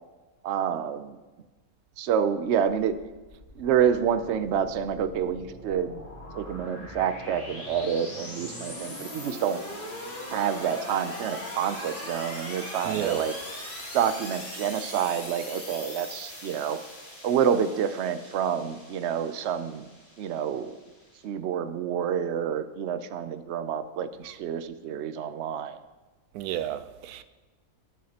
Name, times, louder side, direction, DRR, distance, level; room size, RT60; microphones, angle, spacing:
voice 1, 0.4-1.2 2.0-3.0 3.6-6.1 6.3-9.6 10.3-13.3 13.9-16.8 17.2-19.9 20.2-20.8 21.2-25.8, right 8 dB, 60° right, 0.8 m, -28 dB
sound 1, 2.6-21.2, left 1 dB, 35° left, 3.0 m, -41 dB
voice 2, 12.8-13.2 26.3-27.2, right 11 dB, 90° right, 1.1 m, -31 dB
19.0 x 7.3 x 2.9 m
omnidirectional pair, 1.5 m